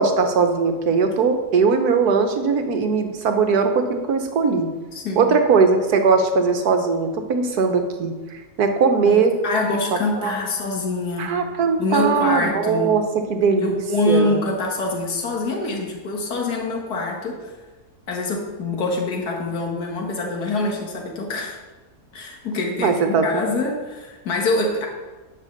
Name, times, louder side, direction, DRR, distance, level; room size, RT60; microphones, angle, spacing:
voice 1, 0.0-4.7 5.2-9.4 10.2-10.4 11.2-13.0 13.3-13.8 14.1-14.4 22.8-23.4, right 5 dB, 75° right, 6 dB, 1.6 m, -19 dB
voice 2, 4.9-5.4 9.0-11.4 11.8-13.0 13.6-17.5 18.1-21.6 22.1-24.9, left 2 dB, 75° left, 0 dB, 2.0 m, -25 dB
10.5 x 5.5 x 6.6 m, 1.2 s
omnidirectional pair, 1.7 m